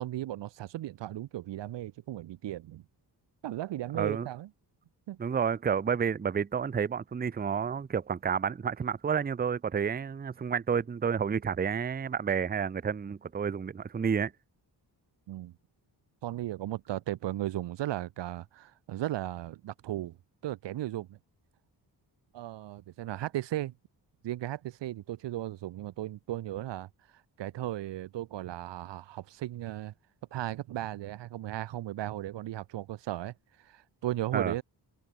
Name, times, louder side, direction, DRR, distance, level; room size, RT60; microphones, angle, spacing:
voice 1, 0.0-2.8 3.4-4.5 5.1-5.2 15.3-15.5 16.2-20.2 20.4-21.2 22.3-23.7 24.2-29.9 30.3-34.6, right 14 dB, 75° right, 0.6 m, -36 dB
voice 2, 3.9-4.3 5.2-14.3 34.3-34.5, right 7 dB, 20° right, 0.5 m, -30 dB
wide cardioid pair, 105°, 43 cm